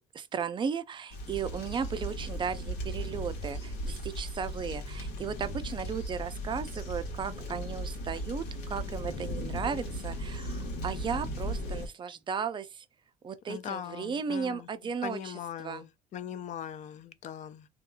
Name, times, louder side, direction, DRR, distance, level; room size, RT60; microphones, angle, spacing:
voice 1, 0.1-12.9 13.2-15.9, right 6 dB, 30° right, 0.4 m, -35 dB
sound 1, 1.1-11.9, equal, 85° left, 1.2 m, -37 dB
voice 2, 13.5-14.7 15.0-17.7, left 9 dB, 45° left, 0.4 m, -40 dB
2.9 x 2.4 x 2.3 m
cardioid pair, 110°, 17 cm